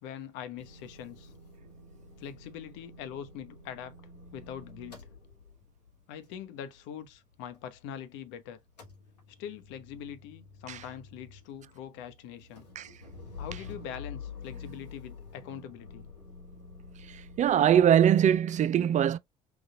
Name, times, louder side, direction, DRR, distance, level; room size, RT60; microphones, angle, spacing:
voice 1, 0.0-1.3 2.2-3.9 4.3-5.1 6.1-8.6 9.4-12.7 13.4-16.1, left 9 dB, 65° left, 0.8 m, -43 dB
Motor vehicle (road) / Engine starting / Idling, 0.6-8.3 8.6-18.4, left 4 dB, 90° left, 0.9 m, -49 dB
voice 2, 17.4-19.2, right 9 dB, 35° right, 0.4 m, -22 dB
4.0 x 2.4 x 3.8 m
figure-of-eight pair, 50°, 21 cm